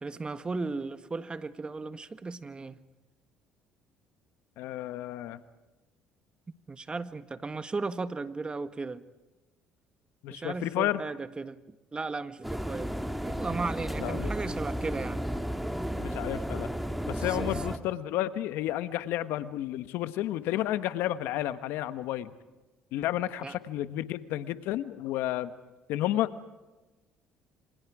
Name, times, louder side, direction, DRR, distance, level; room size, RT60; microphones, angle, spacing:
voice 1, 0.0-2.8 6.7-9.0 10.3-11.6 11.9-12.9 13.2-15.3 17.3-17.5 23.4-23.6, right 3 dB, 25° right, 11 dB, 1.5 m, -35 dB
voice 2, 4.6-5.4 10.2-11.0 14.0-14.3 16.0-16.7 17.1-22.3 22.9-25.5 25.9-26.3, left 13 dB, 75° left, 12 dB, 1.3 m, -31 dB
sound 1, 12.4-17.8, equal, ahead, 2.0 m, -33 dB
27.0 x 26.5 x 4.9 m, 1.1 s
supercardioid pair, 70°, 4 cm